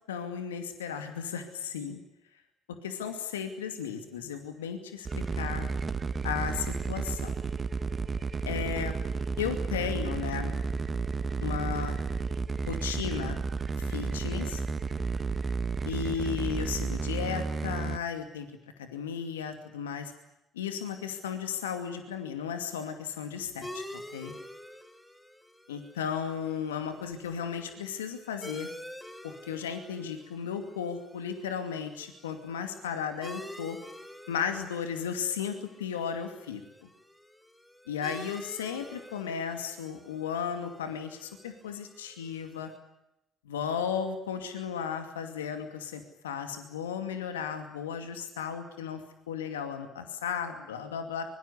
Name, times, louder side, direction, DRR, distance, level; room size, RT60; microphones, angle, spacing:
voice 1, 0.1-2.0 2.7-5.7 6.2-7.3 8.4-8.9 9.4-10.6 11.4-12.0 12.7-13.4 13.8-14.6 15.8-18.5 18.8-20.1 20.5-23.8 24.1-24.3 25.7-28.7 29.2-33.8 34.3-36.6 37.9-42.7 43.5-49.0 49.3-51.3, left 7 dB, 85° left, 7 dB, 2.4 m, -35 dB
sound 1, 5.1-18.0, right 4 dB, 35° right, 1.6 m, -32 dB
sound 2, 23.6-42.8, left 1 dB, 10° left, 4.9 m, -48 dB
24.5 x 23.0 x 8.3 m, 0.86 s
hypercardioid pair, 50°, 0 cm